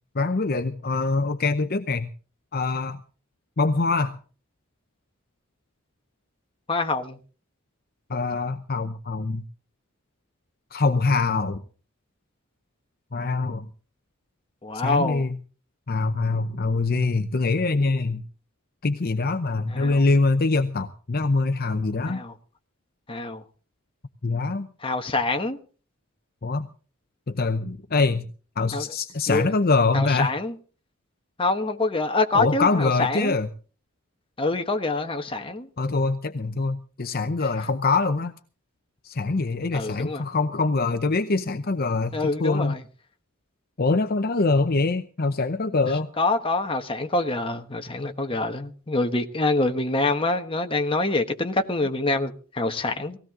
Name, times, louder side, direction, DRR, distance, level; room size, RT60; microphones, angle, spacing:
voice 1, 0.1-2.1 2.5-3.0 3.6-4.2 8.1-9.4 10.7-11.6 13.1-13.7 14.8-15.4 15.9-18.2 18.8-22.2 24.2-24.7 26.4-26.7 27.3-28.3 28.6-30.3 32.3-33.5 35.8-38.3 39.0-42.8 43.8-46.1, left 3 dB, 45° left, 9 dB, 0.7 m, -24 dB
voice 2, 6.7-7.2 14.6-15.2 19.7-20.0 22.1-22.3 23.1-23.4 24.8-25.6 28.7-28.8 29.3-29.5 29.9-30.5 31.4-33.3 34.4-35.7 39.7-40.2 42.1-42.8 46.2-53.2, left 2 dB, 25° left, 6 dB, 1.3 m, -25 dB
18.5 x 16.0 x 3.7 m, 0.39 s
head